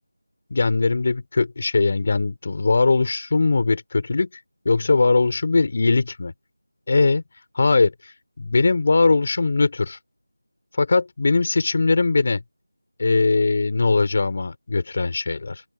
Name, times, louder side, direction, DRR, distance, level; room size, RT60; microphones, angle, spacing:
voice 1, 0.5-4.3 4.7-6.3 6.9-7.2 7.6-10.0 10.8-12.4 13.0-15.6, left 3 dB, 35° left, 3.5 m, -20 dB
open air
figure-of-eight pair, 170°, 0 cm